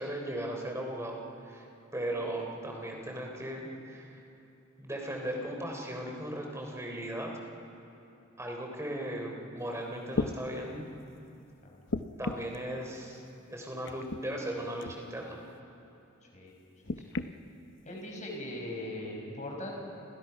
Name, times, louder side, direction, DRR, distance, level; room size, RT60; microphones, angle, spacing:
voice 1, 0.0-1.7 1.9-4.2 4.8-7.3 8.4-10.9 12.2-13.2 13.5-15.4, right 1 dB, 15° right, 1 dB, 3.6 m, -37 dB
sound 1, 9.6-9.7 10.1-10.4 11.9-12.6 13.8-14.2 14.8-15.0 16.8-17.3 18.2-18.3, left 3 dB, 60° left, 0.9 m, -34 dB
voice 2, 16.2-16.5 16.9-17.0 17.8-19.7, left 1 dB, 35° left, 0 dB, 5.8 m, -40 dB
29.5 x 27.5 x 5.8 m, 2.8 s
head